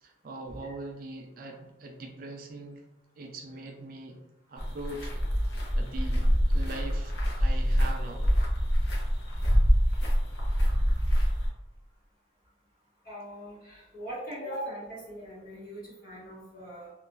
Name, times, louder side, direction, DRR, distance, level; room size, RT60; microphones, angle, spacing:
voice 1, 0.0-2.8 3.2-4.2 4.5-5.2 5.7-8.3 10.5-10.6, right 2 dB, 45° right, 3 dB, 0.3 m, -41 dB
sound 1, 4.6-11.5, equal, 65° left, 0.6 m, -25 dB
voice 2, 13.0-16.9, equal, 45° left, -7 dB, 1.1 m, -40 dB
2.9 x 2.3 x 2.2 m, 0.95 s
head